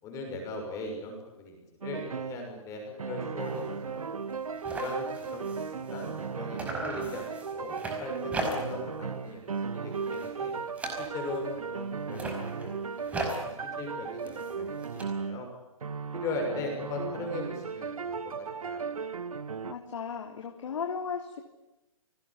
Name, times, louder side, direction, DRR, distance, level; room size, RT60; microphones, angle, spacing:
voice 1, 0.0-4.0 4.7-5.6 5.9-10.5 11.0-15.5 16.1-18.9, left 2 dB, 15° left, 2 dB, 6.2 m, -39 dB
sound 1, 1.8-2.5 3.0-15.5 15.8-19.7, right 5 dB, 80° right, 1.7 m, -36 dB
sound 2, 3.4-3.7 4.0-4.1 4.3-6.3 6.6-8.9 9.3-9.6 9.9-11.5 12.0-15.0, right 2 dB, 10° right, 5.1 m, -39 dB
voice 2, 19.6-21.4, left 6 dB, 65° left, 3 dB, 3.6 m, -35 dB
29.5 x 19.5 x 9.9 m, 0.98 s
hypercardioid pair, 155°, 18 cm